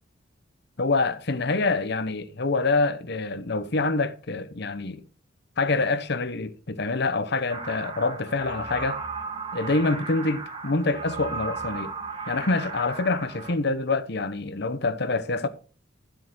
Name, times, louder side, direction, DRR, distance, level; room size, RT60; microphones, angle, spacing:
voice 1, 0.8-5.0 5.6-9.0 9.5-11.9 12.3-15.5, left 3 dB, 55° left, 0.9 m, -26 dB
sound 1, 7.5-13.5, right 4 dB, 25° right, 1.6 m, -35 dB
12.0 x 7.8 x 4.6 m
head